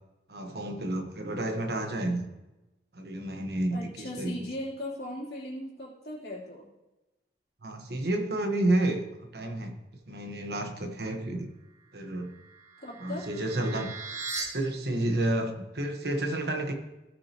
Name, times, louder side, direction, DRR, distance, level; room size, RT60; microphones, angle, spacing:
voice 1, 0.3-2.3 2.9-4.3 7.6-9.7 10.1-11.5 11.9-12.3 13.0-14.0 14.5-16.7, right 1 dB, 65° right, 4 dB, 1.3 m, -30 dB
voice 2, 3.7-6.7 12.8-13.2, left 1 dB, 65° left, -5 dB, 3.3 m, -38 dB
sound 1, 12.2-14.4, right 3 dB, 40° right, 2.1 m, -39 dB
17.5 x 6.3 x 2.9 m, 1.0 s
head